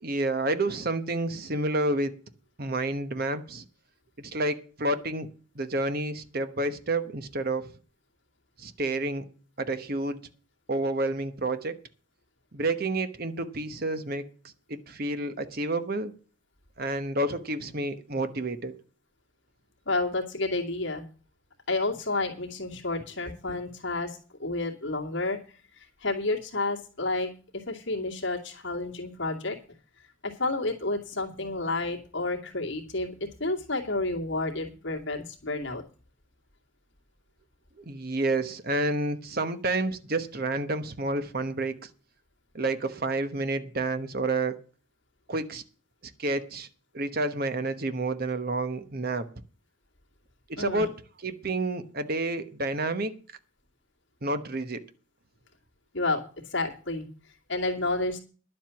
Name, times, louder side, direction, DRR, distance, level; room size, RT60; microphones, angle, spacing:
voice 1, 0.0-2.1 2.6-3.6 4.2-5.3 5.5-7.7 8.6-9.3 9.6-10.3 10.7-11.8 12.5-14.2 14.7-16.1 16.8-18.8 37.8-41.9 42.5-44.6 45.3-45.6 46.2-46.7 46.9-49.3 50.5-50.9 51.2-53.2 54.2-54.8, right 2 dB, 45° right, 10 dB, 1.0 m, -29 dB
voice 2, 19.9-21.0 21.7-29.6 30.0-35.8 50.6-50.9 55.9-58.2, left 2 dB, 60° left, 0 dB, 2.4 m, -31 dB
11.0 x 7.6 x 7.0 m, 0.38 s
head